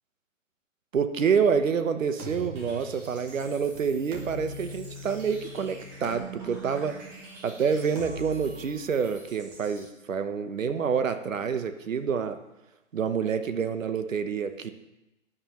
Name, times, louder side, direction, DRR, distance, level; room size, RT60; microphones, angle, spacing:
voice 1, 0.9-7.0 7.4-12.4 12.9-14.7, right 6 dB, 75° right, 9 dB, 1.2 m, -27 dB
sound 1, 2.2-9.8, equal, 15° right, 1.0 m, -42 dB
14.5 x 9.5 x 3.1 m, 0.96 s
hypercardioid pair, 160°, 39 cm